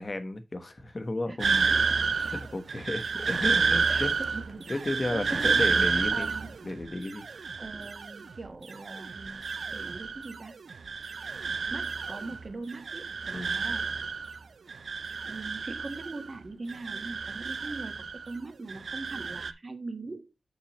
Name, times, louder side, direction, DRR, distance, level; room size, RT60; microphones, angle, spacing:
voice 1, 0.0-1.7 2.1-4.1 4.7-6.3 6.6-7.2 13.3-13.5, left 2 dB, 30° left, 1.1 m, -33 dB
voice 2, 1.3-2.4 3.9-5.7 6.1-6.5 7.6-9.4 9.7-10.6 11.7-13.9 15.2-20.3, right 3 dB, 40° right, 1.4 m, -41 dB
sound 1, 1.4-8.4 8.7-10.4 10.7-12.4 12.7-14.4 14.7-16.4 16.7-18.4 18.7-19.5, right 5 dB, 70° right, 0.5 m, -30 dB
7.1 x 6.5 x 3.0 m
wide cardioid pair, 115°, 0 cm